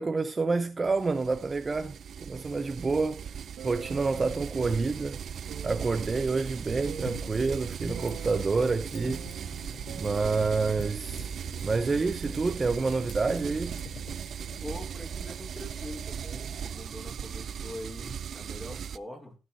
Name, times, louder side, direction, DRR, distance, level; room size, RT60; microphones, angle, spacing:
voice 1, 0.0-3.3 3.6-5.2 5.6-9.3 9.9-11.4 11.6-13.8, right 4 dB, 30° right, 0.8 m, -28 dB
sound 1, 0.8-19.0, right 8 dB, 60° right, 0.5 m, -38 dB
sound 2, 3.6-5.0 5.5-6.0 6.9-8.5 8.9-10.5 10.8-10.9, right 8 dB, 80° right, 1.9 m, -45 dB
Fire, 6.8-14.6, left 5 dB, 70° left, 3.6 m, -47 dB
voice 2, 14.6-19.4, left 1 dB, 10° left, 4.7 m, -43 dB
16.5 x 6.8 x 4.2 m
cardioid pair, 90°, 0 cm